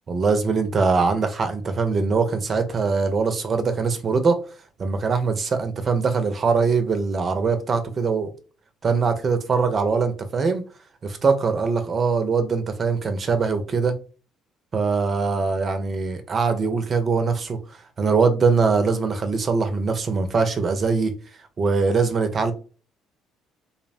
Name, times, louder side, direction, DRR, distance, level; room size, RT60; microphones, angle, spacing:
voice 1, 0.1-4.4 4.8-8.3 8.8-10.7 11.0-13.9 14.7-17.6 18.0-21.1 21.6-22.5, right 4 dB, 45° right, 0.5 m, -22 dB
2.6 x 2.0 x 2.5 m
hypercardioid pair, 55°, 0 cm